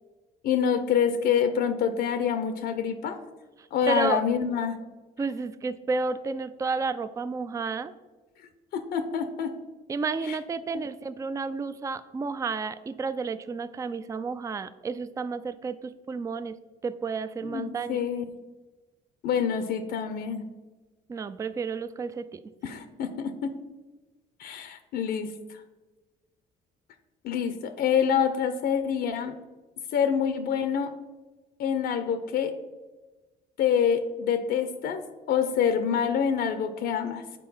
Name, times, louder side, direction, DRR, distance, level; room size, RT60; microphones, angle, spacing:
voice 1, 0.4-3.2 3.7-4.8 8.7-9.5 10.2-10.4 10.7-10.8 17.4-18.3 19.2-20.4 22.6-23.5 24.4-25.3 27.2-29.3 29.9-30.9 31.6-32.6 33.6-35.0 35.3-37.2, left 7 dB, 70° left, 9 dB, 0.6 m, -26 dB
voice 2, 3.9-4.2 5.2-7.9 9.9-16.6 16.8-18.0 21.1-22.4, right 4 dB, 20° right, 13 dB, 0.3 m, -31 dB
6.7 x 4.5 x 5.5 m, 1.2 s
cardioid pair, 110°, 17 cm